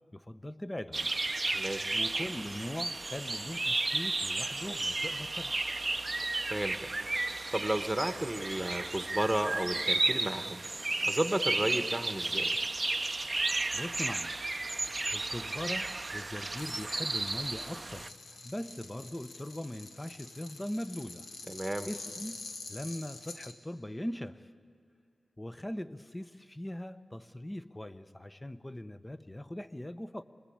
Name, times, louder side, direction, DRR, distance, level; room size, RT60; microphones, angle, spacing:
voice 1, 0.1-1.1 1.9-5.6 13.7-14.4 15.1-21.3 21.9-22.4 22.7-24.5 25.4-30.2, left 1 dB, 15° left, 12 dB, 0.9 m, -40 dB
sound 1, 0.9-18.1, right 2 dB, 35° right, 0.6 m, -33 dB
voice 2, 1.5-2.0 6.5-6.9 7.5-10.6 11.0-12.7 21.5-21.9, right 1 dB, 10° right, 8 dB, 1.4 m, -33 dB
sound 2, 16.6-23.5, left 3 dB, 90° left, 1.7 m, -47 dB
26.0 x 20.5 x 8.7 m, 2.3 s
cardioid pair, 55°, 0 cm